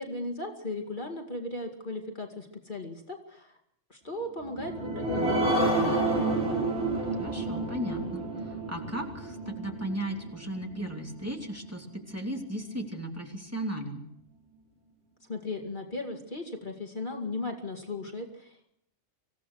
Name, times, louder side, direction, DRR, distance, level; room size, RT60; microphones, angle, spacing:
voice 1, 0.0-3.6 3.9-6.1 15.3-18.7, left 2 dB, 40° left, 2 dB, 2.5 m, -37 dB
sound 1, 4.4-11.5 12.0-12.1 12.4-12.5, right 2 dB, 60° right, 5.1 m, -30 dB
voice 2, 7.1-14.0, right 1 dB, 10° right, 0 dB, 3.0 m, -36 dB
26.0 x 16.5 x 6.4 m, 0.73 s
omnidirectional pair, 1.3 m